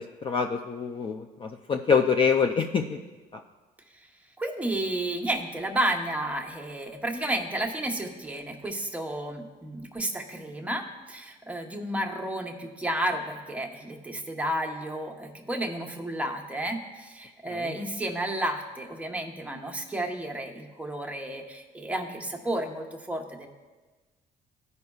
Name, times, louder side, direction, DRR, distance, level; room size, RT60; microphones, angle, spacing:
voice 1, 0.0-3.0 3.3-3.4 17.5-17.8, left 6 dB, 30° left, 5 dB, 0.4 m, -26 dB
voice 2, 4.4-23.5, right 1 dB, 10° right, 2 dB, 0.9 m, -32 dB
15.0 x 5.4 x 2.3 m, 1.3 s
cardioid pair, 110°, 17 cm